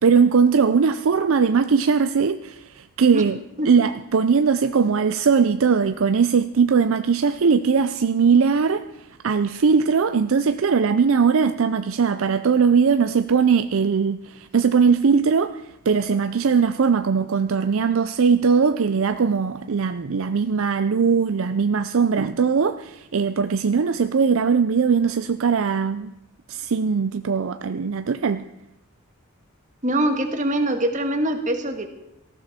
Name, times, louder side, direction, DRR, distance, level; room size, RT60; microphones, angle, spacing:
voice 1, 0.0-3.4 3.6-26.1 26.5-28.5, right 5 dB, 60° right, 10 dB, 0.5 m, -20 dB
voice 2, 29.8-31.9, right 1 dB, 35° right, 6 dB, 1.6 m, -23 dB
18.5 x 14.5 x 4.3 m, 0.88 s
head